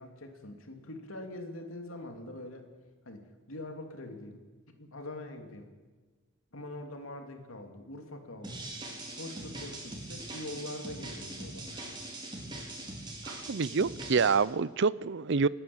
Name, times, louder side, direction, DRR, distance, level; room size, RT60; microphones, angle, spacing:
voice 1, 0.0-2.7 3.0-3.2 3.5-4.4 4.8-5.7 6.5-8.7 9.1-12.0, left 1 dB, 90° left, 4 dB, 3.0 m, -43 dB
sound 1, 8.4-14.4, right 2 dB, 20° right, 4.5 m, -42 dB
voice 2, 13.3-15.5, right 5 dB, 60° right, 19 dB, 0.6 m, -27 dB
29.5 x 11.0 x 8.7 m, 1.3 s
head